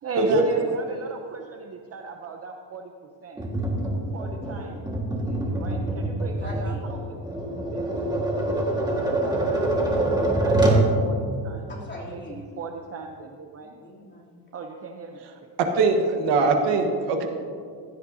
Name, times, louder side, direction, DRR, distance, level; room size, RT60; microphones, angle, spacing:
voice 1, 0.0-2.9 3.2-3.4 4.1-4.9 5.2-7.2 7.7-7.9 9.2-11.7 12.1-13.7 14.5-15.3, right 5 dB, 35° right, 3 dB, 0.6 m, -38 dB
Tap, 3.4-10.9, right 1 dB, 10° right, 1.6 m, -25 dB
voice 2, 6.4-6.8 11.7-12.5 13.6-14.3, left 1 dB, 25° left, -5 dB, 3.0 m, -40 dB
voice 3, 15.6-17.3, right 3 dB, 85° right, 4 dB, 1.4 m, -21 dB
16.0 x 12.5 x 2.7 m, 2.2 s
cardioid pair, 155°, 42 cm